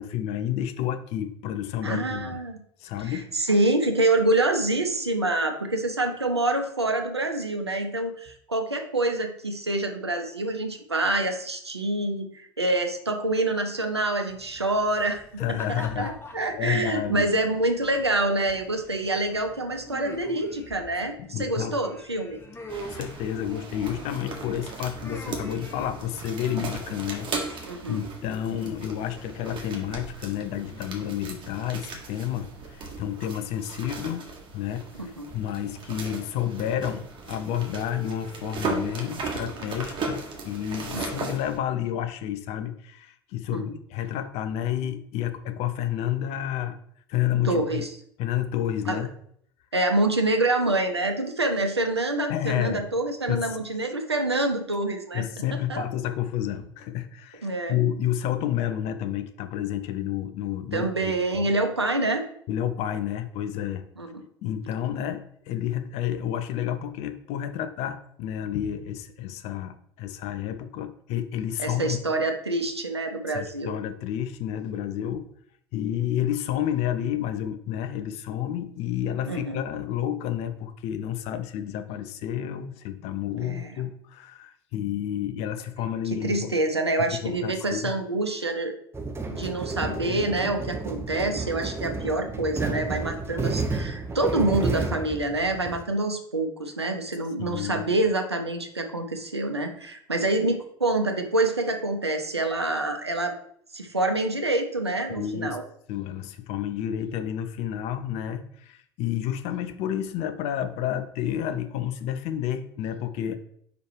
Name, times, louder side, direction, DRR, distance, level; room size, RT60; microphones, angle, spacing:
voice 1, 0.0-2.4 2.8-3.3 15.4-16.1 16.5-17.3 21.2-21.8 22.8-34.3 34.5-46.8 47.1-47.8 48.2-49.1 52.3-52.9 53.3-53.6 55.1-61.5 62.5-63.9 64.4-72.0 73.3-75.3 75.7-86.6 87.2-87.9 89.4-89.5 89.8-90.2 97.4-97.9 105.2-105.6 105.9-113.3, left 10 dB, 50° left, 9 dB, 0.7 m, -30 dB
voice 2, 1.8-2.6 3.0-15.4 15.7-22.4 27.7-28.0 35.0-35.3 40.9-41.3 43.5-43.6 47.4-47.9 48.9-49.1 49.7-55.2 55.7-55.8 57.4-57.8 60.7-62.2 64.0-64.2 71.6-73.7 79.3-79.6 83.4-83.7 86.1-88.7 89.3-103.3 103.7-105.6, right 2 dB, 90° right, 5 dB, 0.7 m, -26 dB
sound 1, 14.3-29.9, left 1 dB, 20° left, 1.2 m, -46 dB
sound 2, 22.7-41.6, right 3 dB, 40° right, 1.6 m, -37 dB
sound 3, 88.9-95.8, right 3 dB, 20° right, 1.0 m, -31 dB
5.1 x 4.6 x 4.6 m, 0.66 s
figure-of-eight pair, 65°, 13 cm